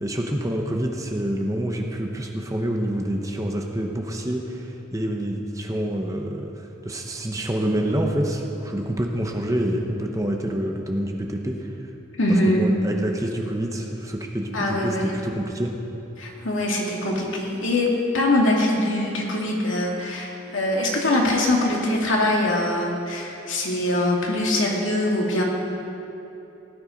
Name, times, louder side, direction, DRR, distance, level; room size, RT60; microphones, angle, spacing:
voice 1, 0.0-11.7 12.3-15.7, right 1 dB, 15° right, 2 dB, 0.9 m, -27 dB
voice 2, 12.2-12.6 14.5-15.1 16.2-17.9 18.1-25.4, left 1 dB, 80° left, -2 dB, 2.4 m, -23 dB
16.5 x 10.5 x 5.3 m, 3.0 s
head